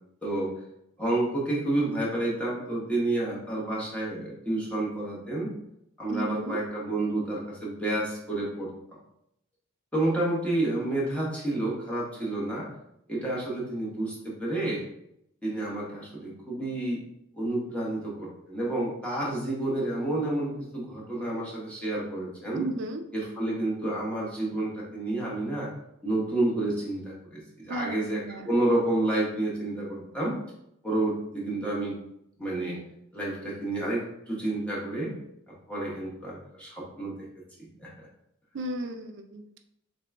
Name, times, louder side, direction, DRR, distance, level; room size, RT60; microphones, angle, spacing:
voice 1, 0.2-0.5 1.0-5.5 6.0-9.0 9.9-12.7 13.1-14.8 15.4-17.0 17.3-22.7 23.1-25.7 26.0-30.3 30.8-32.0 32.4-32.8 33.1-35.1 35.7-37.1 37.8-38.1, right 2 dB, 5° left, -5 dB, 0.9 m, -30 dB
voice 2, 6.1-6.6 22.5-23.0 27.7-27.9 28.2-28.5 38.5-39.4, right 1 dB, 55° right, 6 dB, 0.4 m, -34 dB
3.2 x 2.9 x 3.4 m, 0.78 s
head